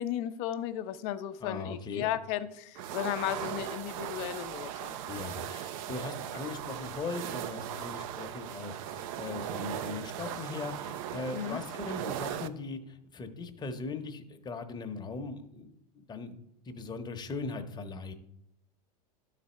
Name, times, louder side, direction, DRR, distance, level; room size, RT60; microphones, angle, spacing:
voice 1, 0.0-5.0 11.3-11.6, left 11 dB, 50° left, 11 dB, 0.7 m, -35 dB
voice 2, 1.4-2.1 5.1-15.7 16.1-18.1, left 3 dB, 20° left, 6 dB, 1.0 m, -39 dB
sound 1, 2.7-12.5, right 11 dB, 60° right, 0.6 m, -38 dB
12.5 x 4.1 x 4.4 m, 0.77 s
hypercardioid pair, 95°, 20 cm